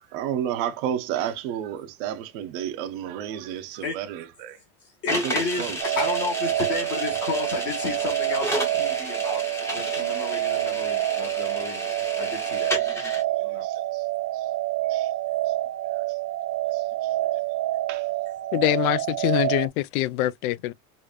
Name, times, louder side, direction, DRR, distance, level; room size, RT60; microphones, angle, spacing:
voice 1, 0.1-4.6 5.1-6.0 13.0-13.1 13.6-14.0 14.3-14.4 14.9-15.1 16.7-16.8 17.9-18.1, right 10 dB, 35° right, 0.5 m, -31 dB
voice 2, 5.0-5.7 5.9-9.4 9.7-11.8 12.2-13.0 13.4-13.6, left 4 dB, 45° left, 1.5 m, -32 dB
sound 1, 5.1-13.2, equal, 5° left, 0.7 m, -32 dB
sound 2, 5.8-19.7, right 16 dB, 70° right, 0.8 m, -27 dB
voice 3, 18.5-20.7, left 17 dB, 65° left, 0.5 m, -24 dB
4.9 x 2.5 x 2.2 m
supercardioid pair, 180°, 46 cm